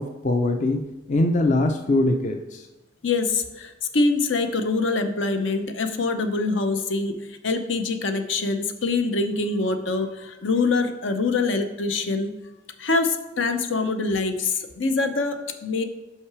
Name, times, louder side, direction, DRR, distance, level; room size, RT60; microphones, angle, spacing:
voice 1, 0.0-2.6, left 2 dB, 40° left, 5 dB, 0.5 m, -22 dB
voice 2, 3.0-12.3 12.8-15.8, left 3 dB, 75° left, 8 dB, 0.7 m, -24 dB
5.9 x 5.7 x 4.8 m, 1.1 s
head